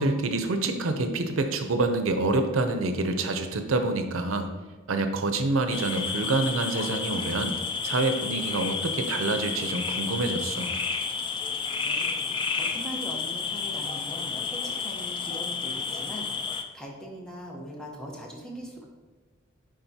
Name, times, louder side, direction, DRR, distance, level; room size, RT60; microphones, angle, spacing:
voice 1, 0.0-4.5 4.9-7.5 7.8-10.7, right 2 dB, 85° right, 7 dB, 0.6 m, -27 dB
sound 1, 5.7-16.6, left 5 dB, 25° left, 0.4 m, -31 dB
voice 2, 11.8-18.9, equal, 5° left, -2 dB, 0.9 m, -41 dB
10.5 x 3.7 x 2.8 m, 1.4 s
head